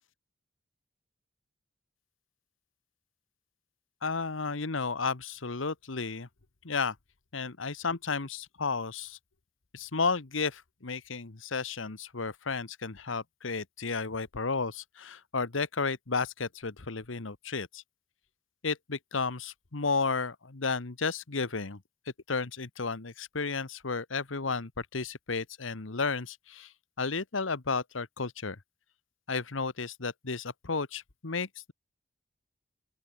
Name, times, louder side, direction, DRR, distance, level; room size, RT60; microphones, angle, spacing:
voice 1, 4.0-6.3 6.6-7.0 7.3-9.2 9.7-17.8 18.6-21.8 22.3-28.6 29.3-31.7, left 4 dB, 80° left, 1.3 m, -33 dB
open air
head